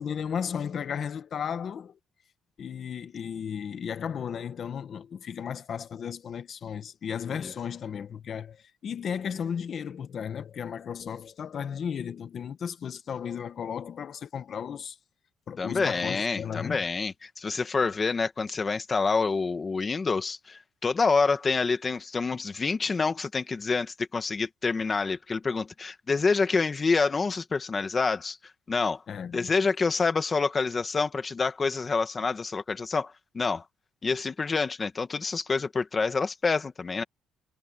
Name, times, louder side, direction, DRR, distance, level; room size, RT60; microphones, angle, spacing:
voice 1, 0.0-2.0 2.6-15.0 15.5-16.8 29.1-29.5, left 7 dB, 40° left, 1.2 m, -34 dB
voice 2, 15.6-28.4 28.7-29.0 29.3-33.6 34.0-37.0, left 4 dB, 25° left, 1.8 m, -27 dB
cardioid pair, 155°, 0 cm